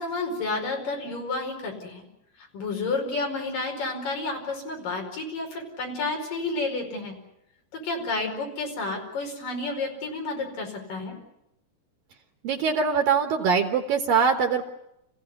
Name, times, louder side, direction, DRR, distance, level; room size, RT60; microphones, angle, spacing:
voice 1, 0.0-2.1 2.5-7.1 7.7-11.2, left 3 dB, 40° left, 2 dB, 6.2 m, -30 dB
voice 2, 12.4-14.7, right 6 dB, 75° right, 5 dB, 2.1 m, -23 dB
28.5 x 15.5 x 9.8 m, 0.84 s
omnidirectional pair, 6.0 m